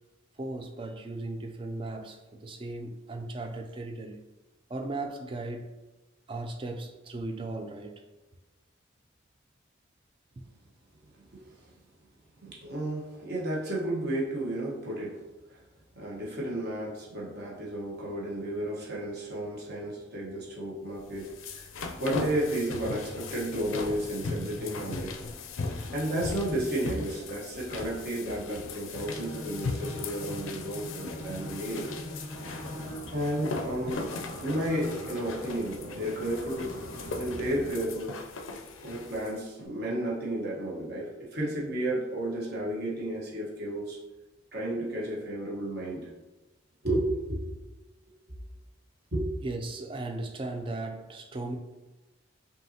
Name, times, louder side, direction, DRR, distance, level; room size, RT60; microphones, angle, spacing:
voice 1, 0.4-4.2 4.7-5.7 6.3-7.9 10.4-10.5 49.4-51.6, right 2 dB, 25° right, 0.3 m, -37 dB
voice 2, 12.4-15.2 15.5-15.6 15.9-21.7 22.0-25.1 25.9-31.9 33.1-34.0 34.4-38.1 38.8-44.0 44.5-46.1 46.8-47.4 49.1-49.3, right 1 dB, 55° right, 1.2 m, -32 dB
sound 1, 21.0-39.4, left 3 dB, 85° left, 0.4 m, -38 dB
Bowed string instrument, 28.9-33.1, left 1 dB, 5° right, 0.9 m, -42 dB
sound 2, 32.3-37.7, right 1 dB, 90° right, 0.9 m, -43 dB
5.4 x 2.7 x 2.8 m
head